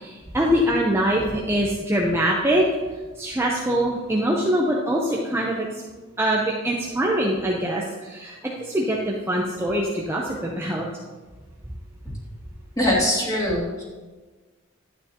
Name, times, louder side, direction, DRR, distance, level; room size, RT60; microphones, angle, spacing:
voice 1, 0.0-2.7 3.2-5.8 6.2-10.9, equal, 15° right, -3 dB, 0.8 m, -23 dB
voice 2, 12.8-13.8, left 1 dB, 20° left, -5 dB, 2.6 m, -22 dB
12.0 x 9.1 x 2.9 m, 1.3 s
head